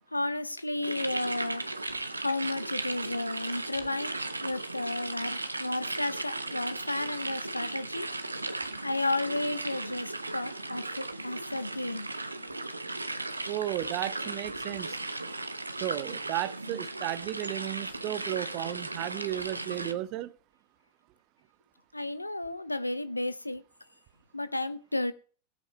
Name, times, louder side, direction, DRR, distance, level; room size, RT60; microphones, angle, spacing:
voice 1, 0.1-1.6 2.1-8.1 8.8-12.1 21.9-23.6 24.3-25.1, left 2 dB, 85° left, 0.8 m, -33 dB
sound 1, 0.8-19.9, right 2 dB, 80° right, 1.0 m, -36 dB
voice 2, 13.5-15.0 15.8-20.3, right 15 dB, 40° right, 0.7 m, -34 dB
19.5 x 8.3 x 3.3 m
figure-of-eight pair, 90°, 0 cm